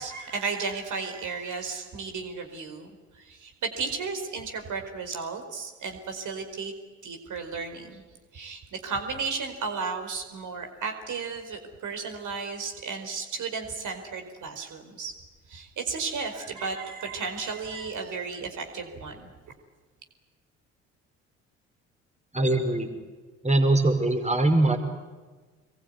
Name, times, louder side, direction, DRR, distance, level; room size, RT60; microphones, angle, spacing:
voice 1, 0.0-2.9 3.1-6.7 7.0-8.0 8.3-15.1 15.5-19.3, right 4 dB, 55° right, 5 dB, 4.8 m, -34 dB
voice 2, 22.3-22.9 23.4-24.8, right 2 dB, 20° right, 6 dB, 5.2 m, -22 dB
27.0 x 23.0 x 9.7 m, 1.3 s
hypercardioid pair, 50°, 36 cm